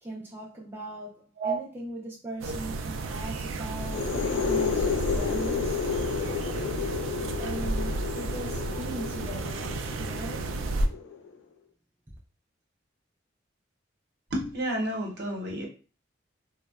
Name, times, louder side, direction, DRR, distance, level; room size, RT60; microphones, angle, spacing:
voice 1, 0.0-4.2 4.5-6.2 7.4-10.5 12.1-12.2, right 2 dB, 10° right, 0.3 m, -39 dB
sound 1, 2.4-10.9, right 2 dB, 90° right, 0.3 m, -32 dB
sound 2, 3.8-11.3, left 6 dB, 80° left, 0.4 m, -32 dB
voice 2, 14.3-15.7, right 2 dB, 55° right, 0.7 m, -30 dB
2.6 x 2.0 x 2.3 m
head